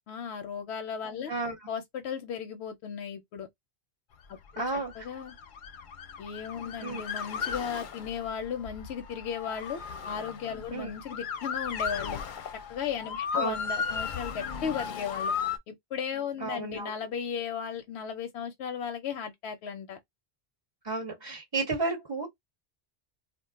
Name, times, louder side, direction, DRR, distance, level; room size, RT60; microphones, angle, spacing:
voice 1, 0.1-1.3 1.7-3.5 4.5-5.3 6.2-12.2 12.7-15.3 15.7-20.0, left 7 dB, 90° left, 0.9 m, -36 dB
Motor vehicle (road) / Siren, 4.4-15.6, left 6 dB, 60° left, 0.6 m, -36 dB
voice 2, 4.6-4.9 6.8-7.0 10.7-10.9 13.3-13.5 16.4-16.9 20.8-22.3, right 3 dB, 30° right, 0.6 m, -32 dB
2.4 x 2.2 x 3.6 m
omnidirectional pair, 1.1 m